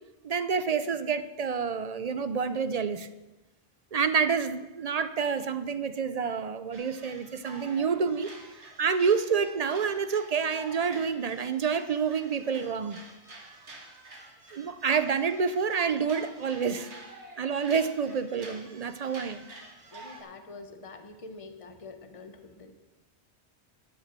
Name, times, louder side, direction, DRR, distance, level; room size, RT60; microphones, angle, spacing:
voice 1, 0.2-3.1 3.9-8.3 8.8-13.0 14.5-16.9 17.4-19.4, right 6 dB, 50° right, 12 dB, 0.5 m, -28 dB
sound 1, 6.7-20.2, right 2 dB, 85° right, 2.2 m, -49 dB
voice 2, 19.9-22.7, left 3 dB, 30° left, 7 dB, 1.0 m, -46 dB
12.5 x 7.9 x 6.1 m, 1.1 s
omnidirectional pair, 1.1 m